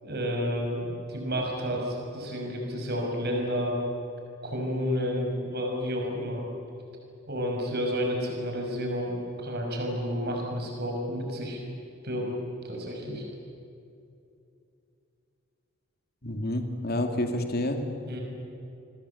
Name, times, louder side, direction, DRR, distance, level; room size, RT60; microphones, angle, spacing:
voice 1, 0.0-3.8 4.4-6.4 7.3-11.6 12.0-12.3 12.6-13.2 18.1-18.2, equal, 55° right, 1 dB, 6.3 m, -30 dB
voice 2, 16.2-17.8, left 1 dB, 50° left, 5 dB, 2.6 m, -29 dB
29.0 x 20.5 x 8.5 m, 2.7 s
head